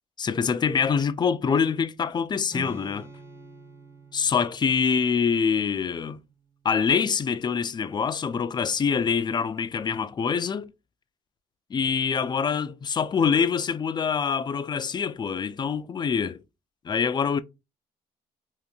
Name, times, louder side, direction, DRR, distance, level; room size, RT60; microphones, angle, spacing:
voice 1, 0.2-3.1 4.1-6.2 6.6-10.7 11.7-16.4 16.8-17.4, left 6 dB, 30° left, 0.4 m, -25 dB
Strum, 2.5-6.6, right 1 dB, 15° right, 0.8 m, -46 dB
3.7 x 2.5 x 2.3 m
cardioid pair, 85°, 15 cm